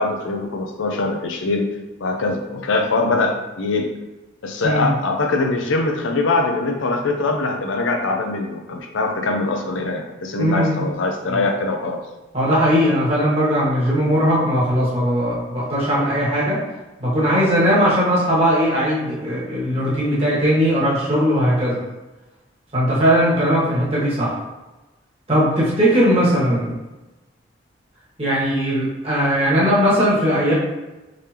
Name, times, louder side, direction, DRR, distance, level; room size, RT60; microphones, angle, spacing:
voice 1, 0.0-1.7 2.0-3.9 4.4-12.0, left 3 dB, 80° left, 3 dB, 0.5 m, -22 dB
voice 2, 10.4-10.8 11.3-11.4 12.3-16.6 17.0-21.8 22.7-24.4 25.3-26.8 28.2-30.5, equal, 30° right, -7 dB, 1.4 m, -19 dB
3.7 x 3.3 x 2.8 m, 1.1 s
head